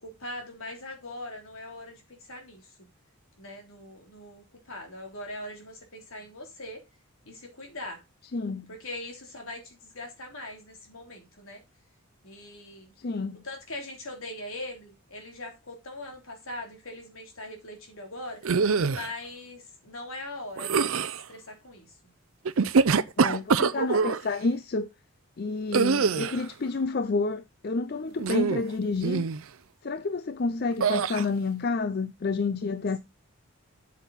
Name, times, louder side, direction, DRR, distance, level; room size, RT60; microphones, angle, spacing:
voice 1, 0.0-2.9 3.4-6.8 7.2-8.0 8.7-11.6 12.2-12.9 13.4-18.6 18.9-21.9 27.9-28.2, left 1 dB, 70° left, 3.3 m, -41 dB
voice 2, 8.3-8.7 13.0-13.4 23.2-24.9 25.4-29.3 29.8-33.0, left 3 dB, 45° left, 0.5 m, -29 dB
sound 1, 18.4-19.1 20.6-21.2 22.5-24.2 25.7-26.4 28.2-28.7 29.0-29.4 30.8-31.3, right 5 dB, 70° right, 0.5 m, -24 dB
8.1 x 7.4 x 4.1 m
head